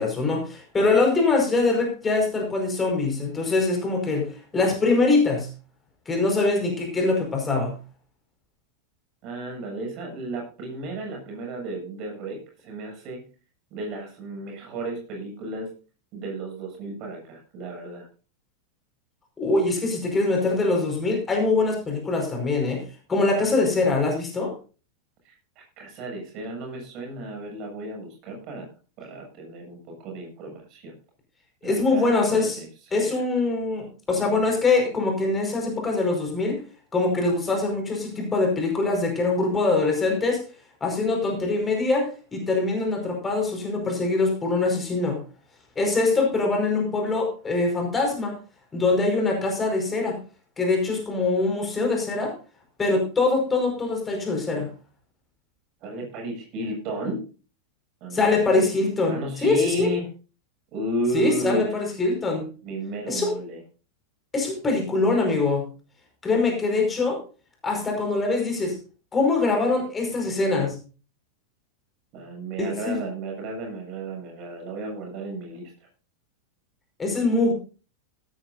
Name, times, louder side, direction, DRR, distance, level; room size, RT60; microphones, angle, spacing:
voice 1, 0.0-5.5 6.1-7.8 19.4-22.8 23.1-24.5 31.6-32.6 32.9-36.6 36.9-40.4 40.8-45.2 45.8-48.3 48.7-50.2 50.6-52.3 52.8-54.7 58.1-59.9 61.1-62.5 63.1-63.3 64.3-65.7 66.2-67.2 67.6-68.8 69.1-70.8 72.6-73.0 77.0-77.5, left 3 dB, 15° left, 2 dB, 5.2 m, -23 dB
voice 2, 9.2-13.2 13.7-15.7 16.1-18.1 25.2-28.7 29.0-30.9 31.6-32.7 32.9-33.1 55.8-57.2 58.0-58.3 59.1-60.1 60.7-61.8 62.6-63.6 72.1-75.6, right 2 dB, 40° right, 2 dB, 7.6 m, -33 dB
17.5 x 13.5 x 2.7 m, 0.35 s
figure-of-eight pair, 90°, 0 cm